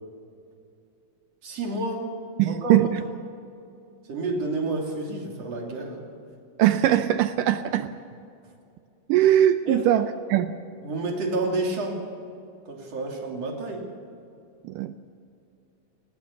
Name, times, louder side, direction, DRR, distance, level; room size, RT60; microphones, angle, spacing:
voice 1, 1.4-2.1 2.5-3.0 4.1-6.1 9.7-9.9 10.8-12.0 12.7-13.9, right 2 dB, 45° right, 0 dB, 3.9 m, -30 dB
voice 2, 2.4-2.9 6.6-7.9 9.1-10.5 14.6-14.9, right 12 dB, 75° right, 10 dB, 2.1 m, -21 dB
20.5 x 18.0 x 7.0 m, 2.5 s
omnidirectional pair, 4.2 m